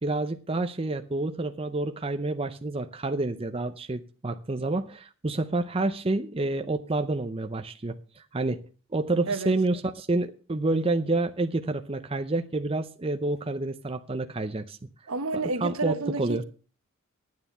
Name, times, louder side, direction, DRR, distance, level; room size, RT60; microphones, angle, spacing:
voice 1, 0.0-8.6 8.9-14.8 15.3-16.4, right 2 dB, 25° right, 0.6 m, -29 dB
voice 2, 15.1-16.4, right 3 dB, 80° right, 1.2 m, -30 dB
11.0 x 9.5 x 5.5 m
head